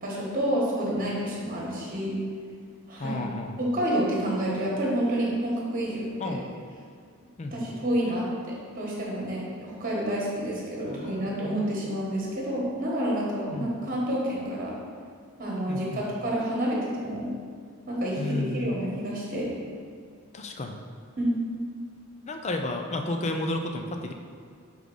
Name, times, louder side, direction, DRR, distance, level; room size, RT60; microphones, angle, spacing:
voice 1, 0.0-2.1 2.9-3.2 3.6-6.4 7.5-14.7 15.4-17.3 17.9-19.5 21.2-21.4, right 1 dB, 40° right, -4 dB, 1.3 m, -29 dB
voice 2, 3.0-3.6 6.2-6.4 7.4-7.7 10.9-11.7 13.5-13.7 15.7-16.0 18.2-18.8 20.3-20.8 22.3-24.1, left 2 dB, 30° left, 4 dB, 0.4 m, -32 dB
4.7 x 3.8 x 5.4 m, 2.2 s
head